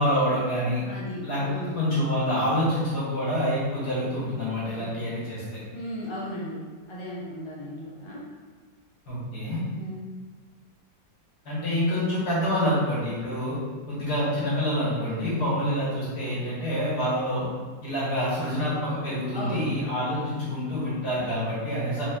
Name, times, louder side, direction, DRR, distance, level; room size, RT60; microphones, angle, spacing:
voice 1, 0.0-0.8 1.2-5.6 9.1-9.6 11.5-13.6 13.9-17.5 17.8-22.0, equal, 60° left, -8 dB, 2.2 m, -27 dB
voice 2, 0.9-1.8 4.6-4.9 5.7-8.2 9.7-10.0 19.3-19.7, equal, 25° left, -6 dB, 0.6 m, -36 dB
4.4 x 3.0 x 3.7 m, 1.5 s
omnidirectional pair, 2.0 m